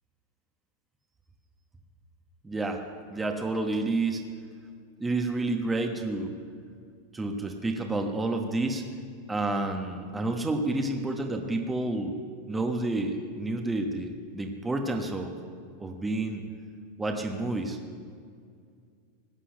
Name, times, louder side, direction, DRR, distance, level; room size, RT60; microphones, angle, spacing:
voice 1, 2.4-2.8 3.1-4.3 5.0-6.3 7.1-8.8 9.3-12.2 12.5-15.3 15.8-16.4 17.0-17.8, right 2 dB, 10° right, 3 dB, 1.1 m, -29 dB
17.5 x 9.9 x 6.5 m, 2.2 s
supercardioid pair, 140°, 0 cm